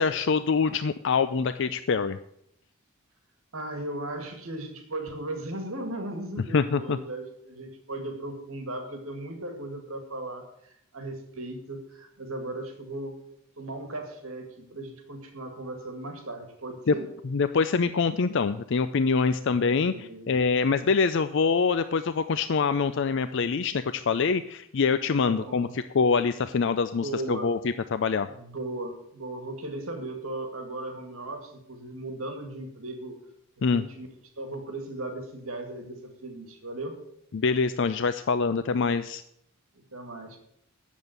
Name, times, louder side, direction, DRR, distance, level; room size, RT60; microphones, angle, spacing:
voice 1, 0.0-2.2 6.5-7.0 16.9-17.0 17.2-28.3 33.6-33.8 37.3-39.2, left 5 dB, 60° left, 11 dB, 0.4 m, -25 dB
voice 2, 3.5-13.2 13.6-17.1 19.9-20.4 25.2-25.8 27.0-27.5 28.3-33.2 33.7-34.1 34.4-37.0 39.7-40.4, right 2 dB, 75° right, 5 dB, 2.1 m, -37 dB
10.0 x 7.2 x 7.9 m, 0.74 s
head